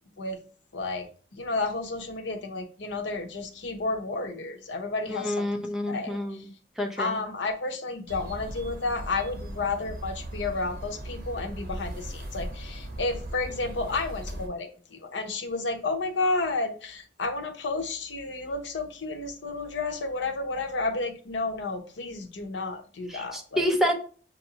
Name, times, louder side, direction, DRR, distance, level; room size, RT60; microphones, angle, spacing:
voice 1, 0.7-5.5 5.9-6.4 7.0-23.7, left 3 dB, 85° left, 0.7 m, -31 dB
voice 2, 5.1-6.5 6.8-7.2 23.1-23.9, left 1 dB, ahead, 0.6 m, -28 dB
sound 1, 8.1-14.5, right 1 dB, 55° right, 1.0 m, -38 dB
6.6 x 2.6 x 2.8 m
head